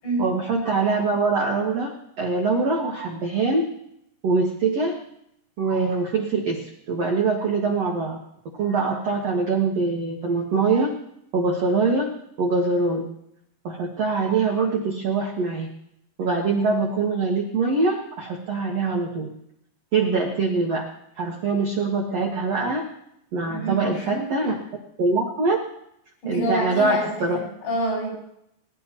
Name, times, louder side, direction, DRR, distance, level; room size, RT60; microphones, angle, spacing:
voice 1, 0.2-1.9 2.2-3.7 4.2-4.9 5.6-8.2 8.6-11.0 11.3-13.1 13.6-15.7 16.2-19.3 19.9-20.9 21.2-22.8 23.3-24.5 25.0-25.6 26.3-27.4, right 3 dB, 70° right, -1 dB, 1.5 m, -23 dB
voice 2, 23.5-24.6 26.2-28.1, right 1 dB, 70° left, -5 dB, 7.7 m, -28 dB
21.5 x 11.5 x 3.0 m, 0.77 s
omnidirectional pair, 4.9 m